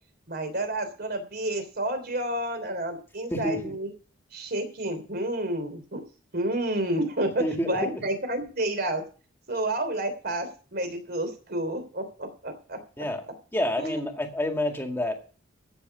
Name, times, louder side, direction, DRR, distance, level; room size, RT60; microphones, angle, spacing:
voice 1, 0.3-3.9 4.3-6.0 6.3-9.0 9.5-12.8 13.8-14.1, right 1 dB, 50° right, 8 dB, 3.3 m, -30 dB
voice 2, 3.3-3.7 7.4-7.9 13.0-13.2 13.5-15.2, left 1 dB, 10° left, 4 dB, 2.0 m, -28 dB
14.0 x 6.9 x 6.9 m, 0.38 s
head